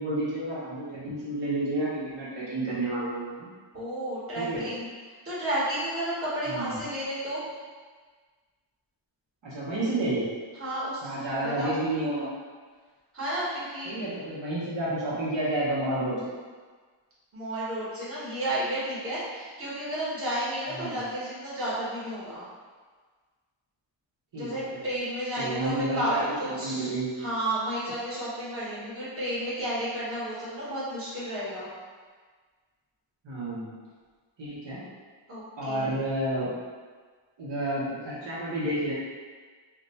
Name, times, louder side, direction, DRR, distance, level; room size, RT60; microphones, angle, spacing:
voice 1, 0.0-3.5 4.4-4.6 6.4-6.8 9.4-10.2 11.0-12.3 13.9-16.3 20.7-21.0 24.3-24.8 25.4-27.2 33.2-33.8 34.4-34.8 35.6-36.5 37.4-38.9, right 1 dB, 65° right, -9 dB, 1.0 m, -30 dB
voice 2, 3.7-4.9 5.2-7.4 10.6-11.1 11.4-11.7 13.1-14.0 17.3-22.5 24.3-26.1 26.4-26.9 27.2-31.7 35.3-36.0, right 1 dB, 25° right, -9 dB, 1.1 m, -32 dB
2.5 x 2.2 x 4.0 m, 1.5 s
wide cardioid pair, 140°, 49 cm